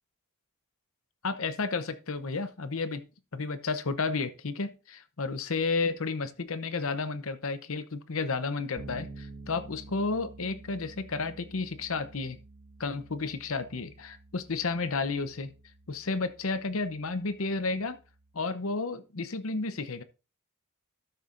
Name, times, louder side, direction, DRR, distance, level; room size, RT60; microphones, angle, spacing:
voice 1, 1.2-3.0 3.3-12.4 12.8-15.5 15.9-18.0 18.3-20.0, left 4 dB, 70° left, 12 dB, 0.8 m, -32 dB
Bass guitar, 8.8-18.4, right 2 dB, 90° right, 1.4 m, -50 dB
13.0 x 6.7 x 2.6 m, 0.32 s
head